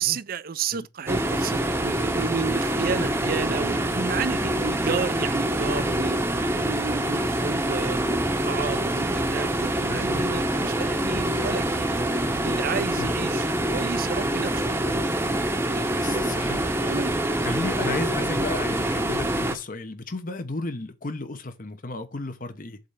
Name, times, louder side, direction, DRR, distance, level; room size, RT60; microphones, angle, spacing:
voice 1, 0.0-6.2 6.5-12.0 12.4-16.2 16.9-17.2, right 6 dB, 50° right, 0.5 m, -32 dB
sound 1, 1.1-19.6, right 1 dB, 15° right, 0.8 m, -25 dB
voice 2, 9.9-10.3 13.0-13.1 16.0-16.7 17.4-22.8, left 3 dB, 50° left, 1.0 m, -33 dB
7.8 x 3.3 x 5.5 m
head